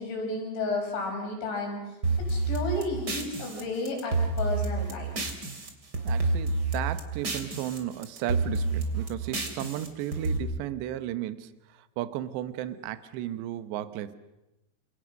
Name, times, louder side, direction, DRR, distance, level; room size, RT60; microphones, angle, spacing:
voice 1, 0.0-1.8 2.2-5.1, left 2 dB, 75° left, 1 dB, 8.3 m, -32 dB
sound 1, 2.0-5.7 5.9-7.8 8.0-10.4, right 3 dB, 25° right, 2.9 m, -29 dB
voice 2, 6.0-14.2, right 12 dB, 75° right, 12 dB, 3.2 m, -34 dB
28.0 x 28.0 x 6.4 m, 0.97 s
omnidirectional pair, 5.3 m